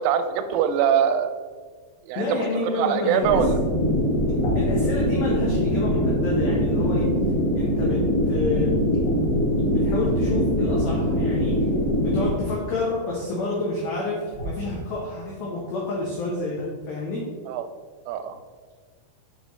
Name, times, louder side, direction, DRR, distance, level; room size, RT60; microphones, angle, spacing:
voice 1, 0.0-1.3 2.0-2.4 2.7-3.6 17.5-17.7 18.1-18.4, right 8 dB, 90° right, 9 dB, 3.1 m, -23 dB
voice 2, 2.2-3.4 4.5-7.1 7.6-8.0 8.3-8.8 9.7-11.7 12.0-17.2, left 2 dB, 85° left, -4 dB, 2.1 m, -29 dB
sound 1, 3.2-12.3, equal, 60° left, 2.6 m, -22 dB
sound 2, 4.3-4.9 8.9-9.6 12.1-12.4 13.3-13.4 14.3-14.7, right 1 dB, 45° left, 2.5 m, -33 dB
7.3 x 5.3 x 3.1 m, 1.5 s
omnidirectional pair, 5.6 m